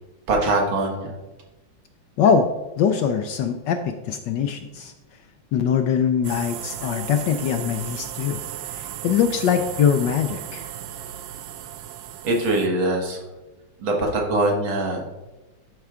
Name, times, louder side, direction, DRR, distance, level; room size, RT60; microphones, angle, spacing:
voice 1, 0.3-1.1 12.2-13.2 13.8-15.0, right 2 dB, 70° right, 0 dB, 2.2 m, -22 dB
voice 2, 2.8-4.9 5.5-8.4 8.7-10.6, left 7 dB, 75° left, 7 dB, 1.1 m, -22 dB
sound 1, 6.2-12.7, right 10 dB, 85° right, 0.8 m, -35 dB
11.5 x 4.6 x 3.6 m, 1.1 s
omnidirectional pair, 2.3 m